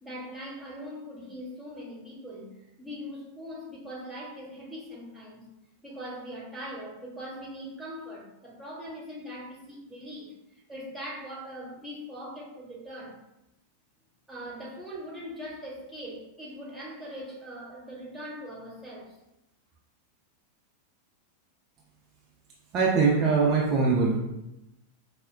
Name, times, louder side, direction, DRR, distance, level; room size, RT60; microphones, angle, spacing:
voice 1, 0.0-5.5 5.8-10.3 10.7-13.2 14.3-19.2, equal, ahead, -7 dB, 1.1 m, -41 dB
voice 2, 22.7-24.2, right 4 dB, 35° right, -2 dB, 0.4 m, -22 dB
4.3 x 2.1 x 2.2 m, 0.89 s
figure-of-eight pair, 90°, 0 cm